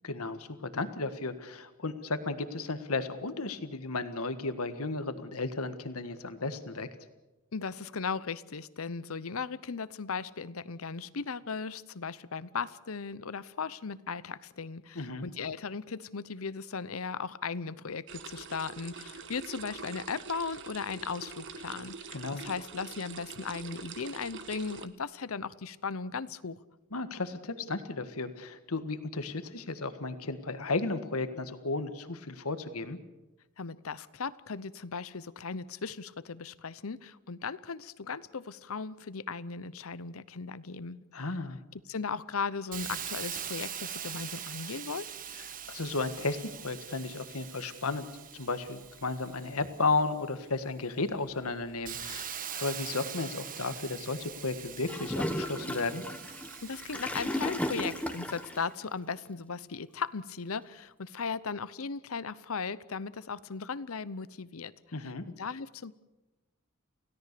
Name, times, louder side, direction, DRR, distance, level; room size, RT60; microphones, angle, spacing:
voice 1, 0.0-6.9 14.9-15.3 22.1-22.4 26.9-33.0 41.1-41.6 45.7-48.1 48.3-56.0 64.9-65.2, left 3 dB, 85° left, 10 dB, 1.6 m, -34 dB
voice 2, 7.5-21.9 22.3-26.6 33.6-41.4 41.9-45.1 56.6-64.7 65.0-65.9, left 5 dB, 70° left, 17 dB, 0.8 m, -37 dB
sound 1, 18.1-24.9, right 5 dB, 60° right, 1.4 m, -44 dB
Hiss, 42.7-50.3 50.8-58.5, right 9 dB, 40° right, 1.2 m, -43 dB
Gurgling / Toilet flush, 54.9-58.6, left 1 dB, 5° left, 1.4 m, -35 dB
28.5 x 17.0 x 6.8 m, 1.1 s
head